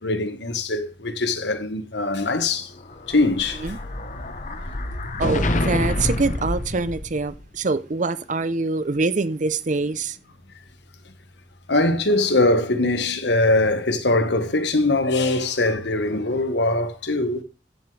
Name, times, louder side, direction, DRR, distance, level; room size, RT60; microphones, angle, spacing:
voice 1, 0.0-2.7 3.1-3.6 11.7-17.4, left 2 dB, 70° left, 1.4 m, -22 dB
Explosion, 2.8-7.4, left 1 dB, 45° left, 1.0 m, -27 dB
voice 2, 5.2-10.2, right 3 dB, 45° right, 0.7 m, -24 dB
14.0 x 7.7 x 3.3 m
head